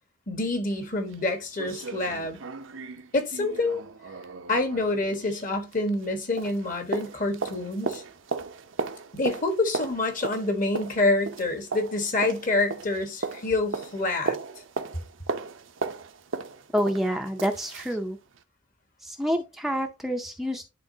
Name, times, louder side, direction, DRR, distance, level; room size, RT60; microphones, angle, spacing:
voice 1, 0.3-2.4 3.1-3.8 4.5-8.0 9.1-14.4, left 2 dB, 45° left, 1.3 m, -27 dB
sound 1, 0.7-0.8 1.1-1.2 1.6-6.1 6.4-18.0 18.4-18.5, right 4 dB, 75° right, 0.7 m, -36 dB
voice 2, 16.7-18.2 19.0-20.7, equal, ahead, 0.5 m, -28 dB
10.5 x 3.7 x 2.7 m
head